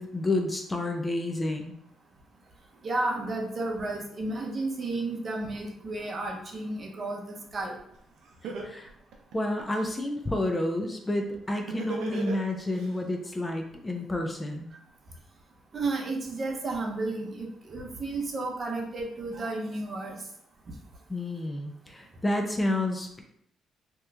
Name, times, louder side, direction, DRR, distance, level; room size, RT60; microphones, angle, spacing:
voice 1, 0.0-1.8 8.6-8.9 9.3-14.7 21.1-23.2, left 1 dB, 20° left, 4 dB, 0.4 m, -30 dB
voice 2, 2.8-7.7 15.7-20.2, right 2 dB, 40° right, 0 dB, 0.7 m, -32 dB
Laughter, 7.9-8.0 8.4-9.9 11.7-12.9, right 4 dB, 80° right, 0.6 m, -35 dB
2.9 x 2.3 x 3.3 m, 0.72 s
cardioid pair, 90°, 0 cm